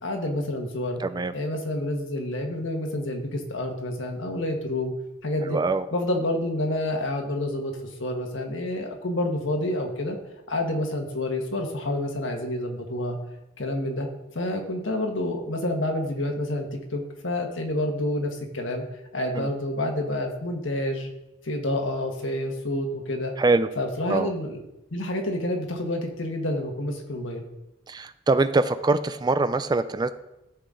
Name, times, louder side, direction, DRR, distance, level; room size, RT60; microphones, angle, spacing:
voice 1, 0.0-1.0 1.3-4.9 5.2-5.6 5.9-7.7 8.0-10.2 10.5-13.2 13.6-14.1 14.3-18.9 19.1-21.1 21.4-23.3 23.8-24.6 24.9-27.4, left 1 dB, 80° left, 2 dB, 1.5 m, -28 dB
voice 2, 1.0-1.3 5.5-5.9 19.3-19.5 23.4-23.7 24.1-24.3 27.9-30.1, right 3 dB, 20° right, 12 dB, 0.3 m, -23 dB
13.0 x 5.8 x 3.8 m, 0.92 s
head